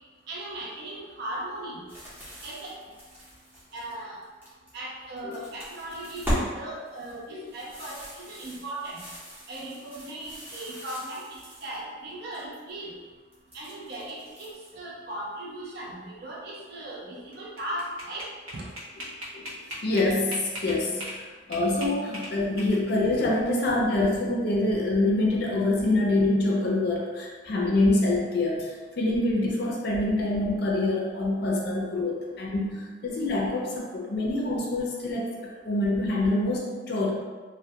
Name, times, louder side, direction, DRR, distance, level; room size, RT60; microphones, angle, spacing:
voice 1, 0.3-1.9 2.4-2.8 3.7-4.2 4.7-9.1 9.5-12.9 13.5-18.7 23.2-23.3, right 1 dB, 50° right, -4 dB, 0.5 m, -38 dB
sound 1, 1.9-4.7 5.1-6.5 6.8-11.8 12.1-12.7 13.3-14.7, equal, 10° right, 0.7 m, -38 dB
sound 2, 17.3-21.2 21.5-23.0, equal, 90° right, 0.7 m, -38 dB
voice 2, 19.8-21.2 21.5-37.1, left 2 dB, 50° left, -2 dB, 0.4 m, -26 dB
2.2 x 2.1 x 2.7 m, 1.4 s
head